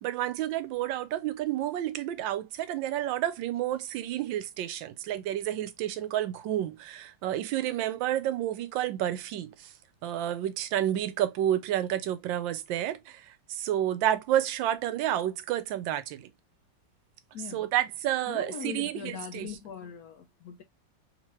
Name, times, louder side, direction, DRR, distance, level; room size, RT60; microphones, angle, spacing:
voice 1, 0.0-9.7 10.0-16.3 17.5-19.5, right 12 dB, 80° right, 1.3 m, -30 dB
voice 2, 17.3-17.7 18.3-20.6, left 7 dB, 70° left, 0.9 m, -41 dB
3.6 x 2.9 x 3.0 m
omnidirectional pair, 2.0 m